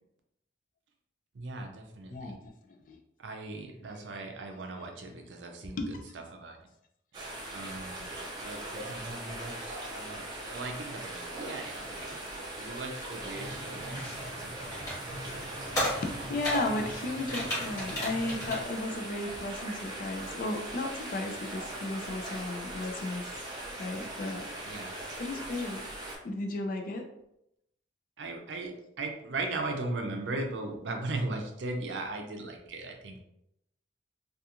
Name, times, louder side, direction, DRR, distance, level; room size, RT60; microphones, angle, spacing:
voice 1, 1.3-2.3 3.2-5.8 6.1-6.6 7.1-8.1 8.4-14.0 23.3-23.5 24.6-25.0 28.2-33.2, right 2 dB, 80° right, 3 dB, 0.5 m, -38 dB
voice 2, 2.1-3.0 5.8-6.0 16.0-23.4 23.8-24.4 24.7-25.8 26.2-27.1, left 2 dB, 45° left, 3 dB, 0.4 m, -35 dB
sound 1, 7.1-26.2, right 1 dB, 20° right, 0.5 m, -40 dB
sound 2, 13.3-18.6, equal, 20° left, 1.1 m, -36 dB
2.4 x 2.4 x 2.8 m, 0.80 s
head